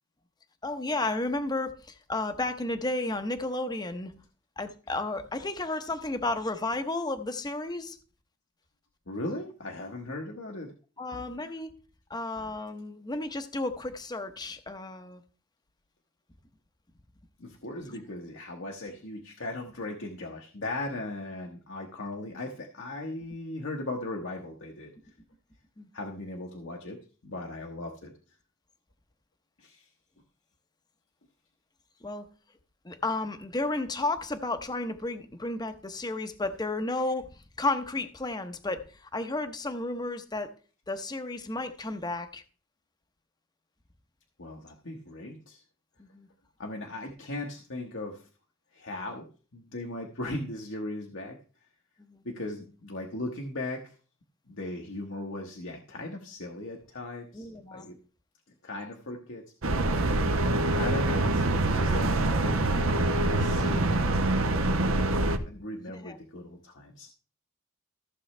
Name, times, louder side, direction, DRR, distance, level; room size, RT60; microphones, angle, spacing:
voice 1, 0.6-4.1 4.6-8.0 11.0-11.7 12.1-15.2 17.9-18.0 25.8-25.9 32.0-32.3 32.8-40.5 40.9-42.4 46.0-46.3 52.1-52.2 57.3-57.9 65.9-66.2, left 2 dB, 20° left, 0.8 m, -32 dB
voice 2, 9.1-10.7 17.4-24.9 25.9-27.0 27.2-28.1 29.6-29.9 44.4-45.6 46.6-48.3 48.7-49.3 49.5-51.4 52.2-53.9 54.5-58.0 58.6-60.2 60.7-64.2 64.6-65.2 65.4-67.1, left 2 dB, 65° left, 1.2 m, -38 dB
sound 1, 59.6-65.4, right 2 dB, 75° right, 1.0 m, -25 dB
15.0 x 7.0 x 3.3 m
head